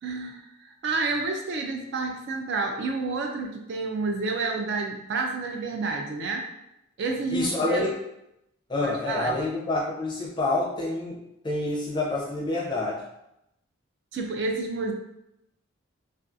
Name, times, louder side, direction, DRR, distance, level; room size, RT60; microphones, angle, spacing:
voice 1, 0.0-6.4 7.0-7.8 8.8-9.4 14.1-14.9, right 3 dB, 50° right, 3 dB, 0.3 m, -29 dB
voice 2, 7.3-7.9 8.7-13.0, left 2 dB, 20° left, -4 dB, 0.4 m, -28 dB
2.5 x 2.3 x 2.5 m, 0.84 s
head